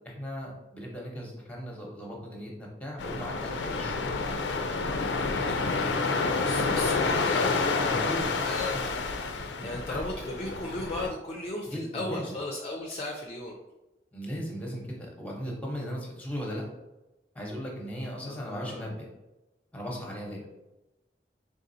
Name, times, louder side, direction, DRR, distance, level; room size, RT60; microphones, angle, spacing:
voice 1, 0.0-4.0 5.0-5.6 6.9-7.0 7.8-8.3 8.7-8.8 9.6-10.0 11.7-12.4 14.1-16.6 17.3-19.1 19.7-20.4, equal, 10° left, -1 dB, 0.9 m, -37 dB
sound 1, 3.0-11.1, left 4 dB, 90° left, 0.5 m, -29 dB
voice 2, 6.4-7.8 8.4-8.7 9.6-13.5 18.2-18.9, left 2 dB, 35° left, -1 dB, 0.5 m, -36 dB
3.9 x 3.7 x 2.7 m, 1.0 s
head